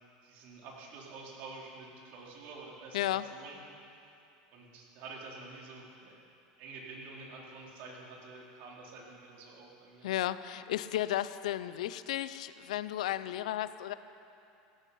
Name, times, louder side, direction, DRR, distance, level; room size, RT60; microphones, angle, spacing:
voice 1, 0.2-3.0 3.3-3.6 3.9-4.0 4.5-6.1 6.6-10.1, right 3 dB, 60° right, -2 dB, 3.6 m, -48 dB
voice 2, 2.9-3.3 10.0-13.9, left 13 dB, 85° left, 14 dB, 0.5 m, -33 dB
17.0 x 13.5 x 5.6 m, 2.7 s
supercardioid pair, 120°, 4 cm